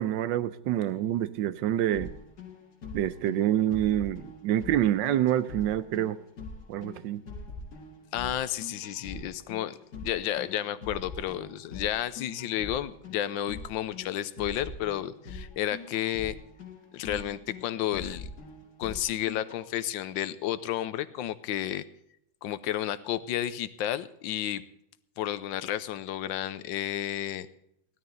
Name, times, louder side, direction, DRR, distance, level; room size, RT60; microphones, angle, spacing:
voice 1, 0.0-2.1 2.9-6.2 6.7-7.2, right 12 dB, 75° right, 15 dB, 1.3 m, -27 dB
sound 1, 1.9-19.6, left 3 dB, 55° left, 2.4 m, -43 dB
voice 2, 8.1-16.3 16.9-18.3 18.8-21.8 22.4-24.6 25.2-27.5, left 12 dB, 80° left, 15 dB, 1.4 m, -32 dB
16.0 x 12.5 x 3.9 m, 0.73 s
omnidirectional pair, 2.1 m